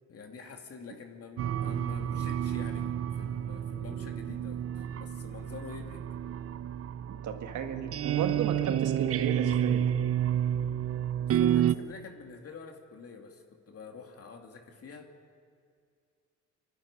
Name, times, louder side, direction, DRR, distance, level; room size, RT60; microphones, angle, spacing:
voice 1, 0.1-6.0 11.3-15.1, left 5 dB, 50° left, 3 dB, 2.6 m, -47 dB
sound 1, 1.4-11.7, right 10 dB, 50° right, 0.6 m, -30 dB
voice 2, 7.1-9.8, right 7 dB, 75° right, 5 dB, 1.9 m, -34 dB
25.0 x 12.0 x 10.0 m, 2.2 s
cardioid pair, 90°, 30 cm